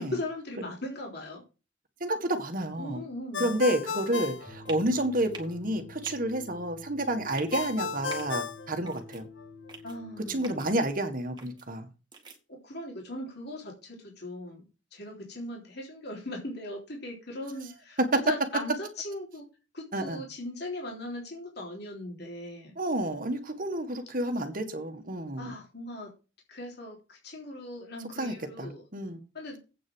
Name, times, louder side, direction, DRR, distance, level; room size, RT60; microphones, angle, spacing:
voice 1, 0.0-1.4 2.8-3.5 9.8-10.4 12.5-19.5 19.7-22.8 25.4-26.1 26.5-28.8 29.3-29.6, left 1 dB, 55° left, 3.5 m, -39 dB
voice 2, 2.0-3.0 3.4-9.3 10.2-11.9 18.0-18.2 19.9-20.2 22.8-25.5 28.2-29.2, right 1 dB, 45° right, 1.7 m, -30 dB
Ringtone, 3.3-5.3 7.5-9.5, left 5 dB, 75° left, 1.0 m, -35 dB
sound 1, 4.5-10.7, left 2 dB, 25° left, 2.5 m, -49 dB
sound 2, 4.7-4.9 5.3-5.6 6.0-6.2 7.2-7.6 8.1-8.4 8.9-9.2 9.7-10.0 10.4-10.7 11.4-11.6 12.1-12.4, right 4 dB, 25° right, 2.1 m, -45 dB
8.6 x 6.3 x 6.3 m
head